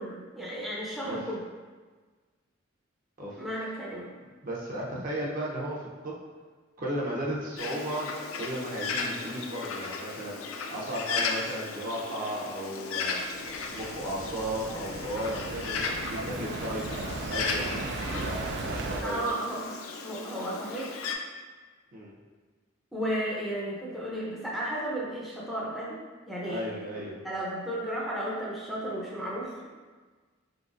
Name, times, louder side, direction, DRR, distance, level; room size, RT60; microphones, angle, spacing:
voice 1, 0.0-1.4 3.4-4.1 19.0-19.8 20.0-20.9 22.9-26.0 26.3-26.7 27.0-29.7, right 1 dB, ahead, -6 dB, 0.6 m, -34 dB
voice 2, 4.4-6.2 6.8-8.1 8.4-13.2 13.7-19.2 21.9-22.1 26.4-27.2, right 1 dB, 45° right, -4 dB, 0.7 m, -35 dB
Bird, 7.6-21.1, left 4 dB, 90° left, 0.4 m, -36 dB
sound 1, 13.2-19.0, right 3 dB, 60° right, 0.3 m, -37 dB
4.2 x 3.9 x 2.5 m, 1.4 s
head